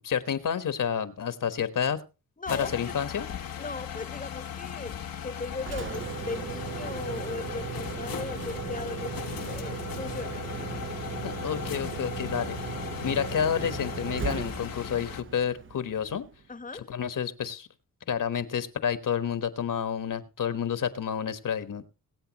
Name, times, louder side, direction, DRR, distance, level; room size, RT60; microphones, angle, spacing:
voice 1, 0.0-2.0 2.5-3.2 11.2-12.6 13.0-16.2 16.9-17.7 18.1-21.8, left 8 dB, 65° left, 1.3 m, -29 dB
voice 2, 2.4-3.0 3.6-10.5 16.5-16.9, left 3 dB, 25° left, 1.0 m, -38 dB
sound 1, 2.5-15.2, left 9 dB, 85° left, 1.1 m, -38 dB
Engine, 5.5-16.5, right 7 dB, 35° right, 0.6 m, -37 dB
23.0 x 8.1 x 3.0 m
cardioid pair, 75°, 34 cm